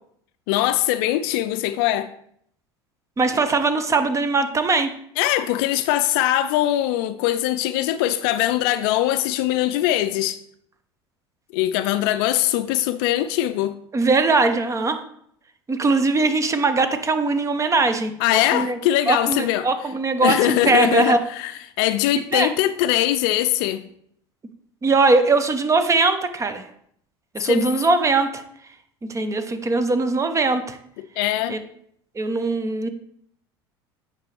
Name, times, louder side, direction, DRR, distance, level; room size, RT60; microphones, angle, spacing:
voice 1, 0.5-2.1 5.2-10.4 11.5-13.8 18.2-19.7 20.2-23.8 27.4-27.8 31.2-31.6, left 13 dB, 65° left, 0.4 m, -22 dB
voice 2, 3.2-4.9 13.9-15.0 15.7-18.8 19.1-19.4 19.6-21.2 22.3-22.5 24.8-26.6 27.3-28.4 29.1-30.8 31.5-31.6 32.2-32.9, right 3 dB, 25° right, 0.8 m, -20 dB
8.8 x 5.1 x 3.3 m
hypercardioid pair, 75°, 13 cm